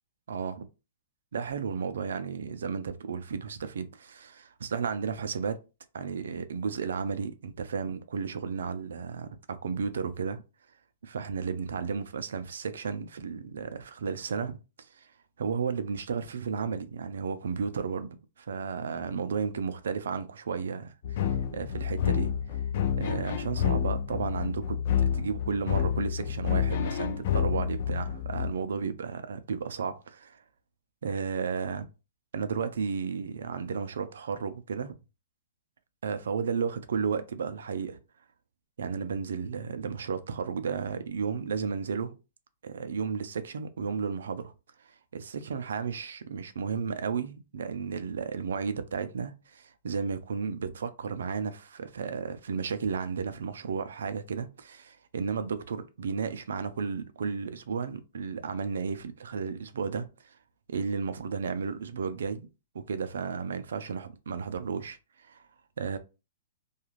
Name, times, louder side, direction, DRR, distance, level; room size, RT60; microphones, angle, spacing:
voice 1, 0.3-0.7 1.3-5.6 5.9-10.4 11.0-15.1 15.4-18.1 18.4-22.3 23.0-24.8 25.1-30.4 31.0-31.9 32.3-34.9 36.0-38.0 38.8-42.1 42.6-44.5 44.8-60.4 60.7-62.5 62.7-65.4 65.8-66.0, right 5 dB, 80° right, 0.4 m, -33 dB
sound 1, 21.0-28.5, left 9 dB, 55° left, 0.4 m, -29 dB
2.4 x 2.3 x 3.0 m
hypercardioid pair, 150°, 0 cm